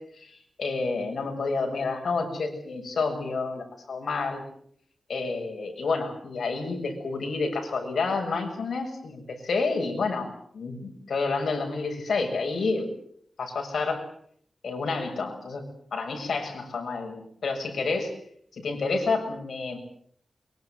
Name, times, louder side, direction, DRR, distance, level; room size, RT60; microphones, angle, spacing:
voice 1, 0.0-4.4 5.1-12.9 13.4-14.1 14.6-15.6 15.9-18.2 18.5-19.8, left 4 dB, 90° left, 3 dB, 7.1 m, -29 dB
24.0 x 22.5 x 7.9 m, 0.63 s
wide cardioid pair, 145°, 0 cm